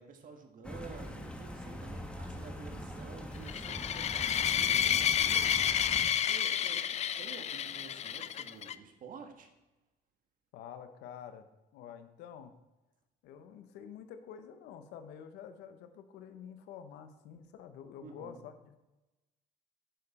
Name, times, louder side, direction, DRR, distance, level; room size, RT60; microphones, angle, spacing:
voice 1, 0.0-5.7 6.2-6.8 7.2-9.5 18.0-18.4, right 5 dB, 55° right, 4 dB, 1.6 m, -50 dB
sound 1, 0.6-6.1, equal, 5° left, 1.3 m, -43 dB
sound 2, 3.5-8.7, left 9 dB, 40° left, 0.4 m, -30 dB
voice 2, 10.5-11.5 11.7-12.5 13.2-18.8, left 8 dB, 90° left, 9 dB, 0.9 m, -48 dB
9.3 x 6.8 x 4.2 m, 1.1 s
cardioid pair, 110°, 17 cm